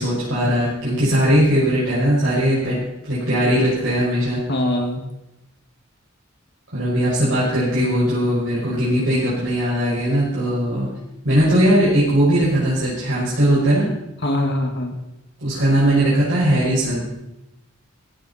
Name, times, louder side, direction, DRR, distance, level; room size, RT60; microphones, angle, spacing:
voice 1, 0.0-2.8 3.1-4.4 6.7-10.9 11.2-13.9 15.4-17.0, equal, 65° right, -9 dB, 6.3 m, -19 dB
voice 2, 4.5-5.0 14.2-15.0, left 1 dB, 55° left, 2 dB, 2.3 m, -23 dB
16.0 x 16.0 x 4.5 m, 0.91 s
head